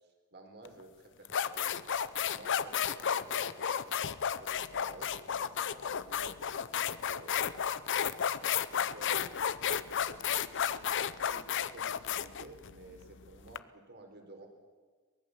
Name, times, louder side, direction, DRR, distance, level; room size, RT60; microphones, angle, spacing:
voice 1, 0.3-1.9 2.3-6.4 6.9-14.5, right 2 dB, 50° right, 4 dB, 4.2 m, -53 dB
sound 1, 0.7-0.8 1.3-13.6, left 8 dB, 55° left, 0.7 m, -32 dB
23.0 x 20.0 x 8.0 m, 1.5 s
head